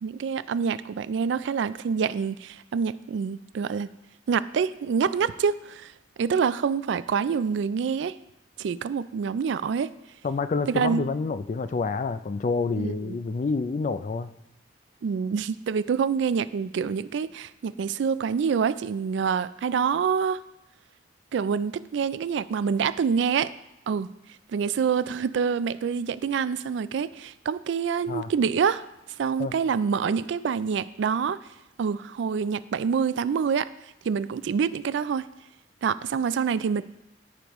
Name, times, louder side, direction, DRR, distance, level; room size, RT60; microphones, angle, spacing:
voice 1, 0.0-3.9 4.3-5.9 6.2-8.2 8.6-9.9 10.7-11.0 12.8-13.2 15.0-20.4 21.3-23.5 23.9-24.1 24.5-28.9 29.2-31.4 31.8-33.7 34.0-35.2 35.8-36.8, right 6 dB, 70° right, 16 dB, 0.3 m, -26 dB
voice 2, 10.2-14.3 28.1-28.3 29.4-29.5, left 4 dB, 40° left, 12 dB, 0.3 m, -28 dB
14.0 x 5.1 x 3.1 m, 0.91 s
head